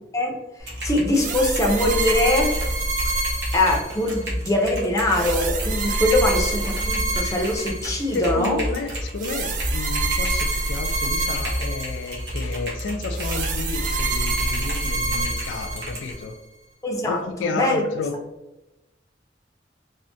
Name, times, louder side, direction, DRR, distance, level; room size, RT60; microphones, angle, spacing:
voice 1, 0.6-2.5 3.5-8.6 16.8-17.8, left 1 dB, 15° left, -1 dB, 0.5 m, -22 dB
Typing, 0.6-16.1, equal, 70° right, 1.2 m, -32 dB
sound 1, 1.1-4.3 5.1-8.2 9.2-12.3 13.2-16.3, right 2 dB, 45° right, 0.3 m, -27 dB
voice 2, 8.1-16.3 17.0-18.2, left 4 dB, 90° left, 6 dB, 0.3 m, -31 dB
3.4 x 2.1 x 2.6 m, 0.98 s
head